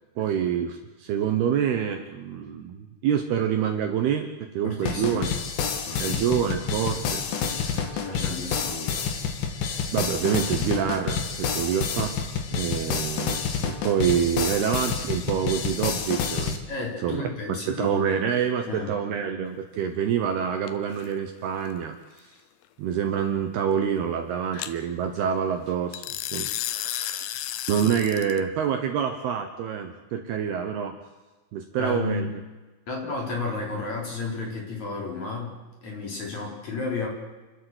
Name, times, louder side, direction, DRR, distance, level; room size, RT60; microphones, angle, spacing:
voice 1, 0.2-5.3 6.0-7.9 9.9-12.2 12.5-16.6 17.0-17.2 17.5-22.0 22.8-26.0 26.3-30.9 31.5-32.3, right 8 dB, 70° right, 6 dB, 2.7 m, -27 dB
voice 2, 4.6-5.3 5.8-6.2 7.4-7.7 8.0-9.0 16.7-18.0 18.7-19.0 24.5-24.6 31.8-32.3 32.9-35.6 35.8-37.1, left 3 dB, 40° left, -1 dB, 5.3 m, -32 dB
sound 1, 4.9-16.6, left 6 dB, 60° left, 2.9 m, -29 dB
sound 2, 20.7-21.1 24.6-24.7 25.9-28.4, left 12 dB, 75° left, 2.7 m, -32 dB
29.5 x 12.5 x 8.0 m, 1.2 s
omnidirectional pair, 5.5 m